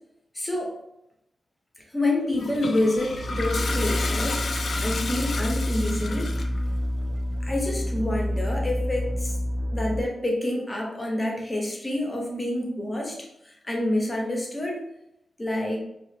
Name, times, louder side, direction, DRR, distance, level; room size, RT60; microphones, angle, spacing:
voice 1, 0.3-0.7 1.9-6.3 7.4-9.3 9.7-14.8 15.4-15.8, left 1 dB, 20° left, 0 dB, 0.7 m, -28 dB
Toilet flush, 2.3-6.6, left 3 dB, 55° left, 0.3 m, -32 dB
sound 1, 3.0-10.0, equal, 75° right, 0.3 m, -28 dB
3.2 x 2.3 x 3.2 m, 0.81 s
wide cardioid pair, 125°, 0 cm